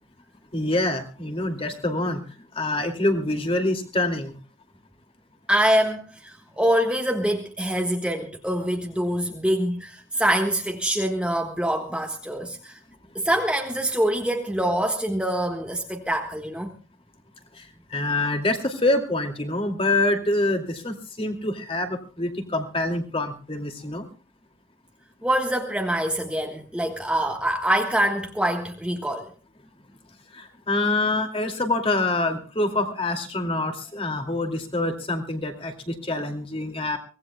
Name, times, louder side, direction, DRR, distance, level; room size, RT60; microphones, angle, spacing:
voice 1, 0.5-2.2 2.6-4.3 17.9-24.1 30.3-37.0, left 2 dB, 30° left, 5 dB, 2.4 m, -26 dB
voice 2, 5.5-12.8 13.1-16.7 25.2-29.3, right 1 dB, 5° right, 2 dB, 1.4 m, -25 dB
24.0 x 18.5 x 2.2 m, 0.36 s
head